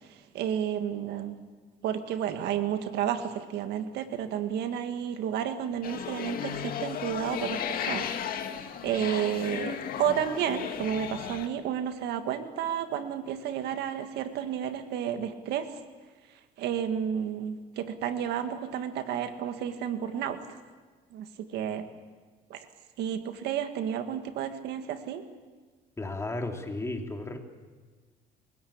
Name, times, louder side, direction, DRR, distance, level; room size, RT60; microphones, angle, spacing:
voice 1, 0.0-1.4 1.8-8.4 8.8-15.7 16.6-20.4 21.1-21.9 22.5-22.7 23.0-25.2, right 9 dB, 80° right, 8 dB, 1.8 m, -31 dB
sound 1, 5.8-11.5, left 8 dB, 60° left, 2.0 m, -35 dB
voice 2, 26.0-27.4, left 2 dB, 15° left, 3 dB, 3.1 m, -34 dB
29.0 x 17.0 x 8.7 m, 1.4 s
cardioid pair, 110°, 17 cm